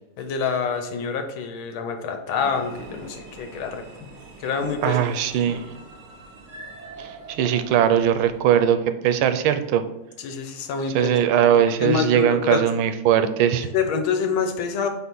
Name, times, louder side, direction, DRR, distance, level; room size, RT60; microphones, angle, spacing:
voice 1, 0.2-4.1 4.4-5.0 10.2-11.1 11.4-12.6 13.6-14.9, left 5 dB, 85° left, 6 dB, 1.6 m, -26 dB
sound 1, 2.3-8.7, right 3 dB, 45° right, 1.0 m, -42 dB
voice 2, 4.8-5.6 7.0-8.8 9.0-9.8 10.9-13.7, right 9 dB, 85° right, 10 dB, 1.4 m, -20 dB
4.6 x 4.2 x 5.3 m, 0.99 s
omnidirectional pair, 2.2 m